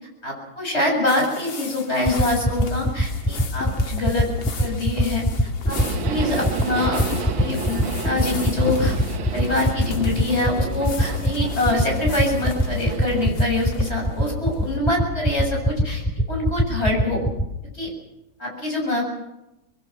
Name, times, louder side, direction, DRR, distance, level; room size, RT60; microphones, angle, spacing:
voice 1, 0.2-4.3 4.6-5.8 6.0-7.0 7.4-9.0 9.3-16.0 16.3-17.2 17.7-17.9 18.4-19.0, left 2 dB, 30° left, 0 dB, 7.6 m, -25 dB
sound 1, 1.1-14.7, left 4 dB, 85° left, 2.6 m, -35 dB
sound 2, 2.0-17.4, equal, 5° left, 2.9 m, -20 dB
Subway metro underground, 5.7-13.3, right 7 dB, 90° right, 2.0 m, -32 dB
26.5 x 21.0 x 6.0 m, 0.91 s
omnidirectional pair, 2.1 m